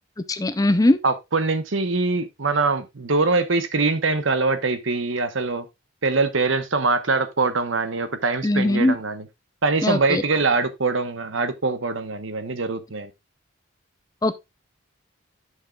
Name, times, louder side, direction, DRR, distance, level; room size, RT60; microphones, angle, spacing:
voice 1, 0.3-1.0 8.4-9.0 9.8-10.2 14.2-14.3, left 1 dB, 15° left, 0.5 m, -20 dB
voice 2, 1.0-5.6 6.0-9.3 9.6-13.1, right 3 dB, 70° right, 1.1 m, -23 dB
11.0 x 6.6 x 2.3 m
head